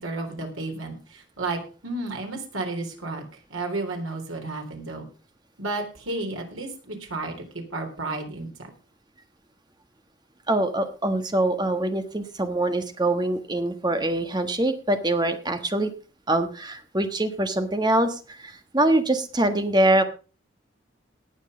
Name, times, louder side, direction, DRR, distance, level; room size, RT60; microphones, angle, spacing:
voice 1, 0.0-3.2 3.5-5.1 5.6-8.7, right 2 dB, 85° right, 3 dB, 3.8 m, -32 dB
voice 2, 10.5-15.9 16.3-20.0, right 1 dB, 20° right, 8 dB, 1.3 m, -24 dB
18.0 x 6.5 x 5.1 m, 0.36 s
head